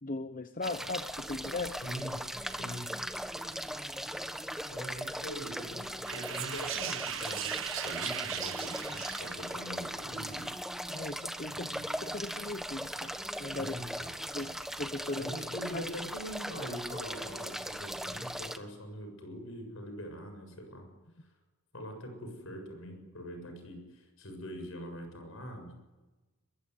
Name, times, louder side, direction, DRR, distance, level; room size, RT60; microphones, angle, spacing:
voice 1, 0.0-1.8 10.9-11.7 12.0-13.8 14.3-15.3 15.7-15.8, left 2 dB, 40° left, 10 dB, 0.9 m, -38 dB
sound 1, 0.6-18.6, equal, ahead, 1.2 m, -39 dB
voice 2, 1.8-3.0 4.7-10.5 11.5-11.9 13.6-14.2 15.2-20.9 21.7-25.8, equal, 65° left, 5 dB, 7.3 m, -43 dB
sound 2, 6.1-9.7, right 11 dB, 60° right, 1.0 m, -38 dB
23.0 x 22.0 x 9.7 m, 1.2 s
head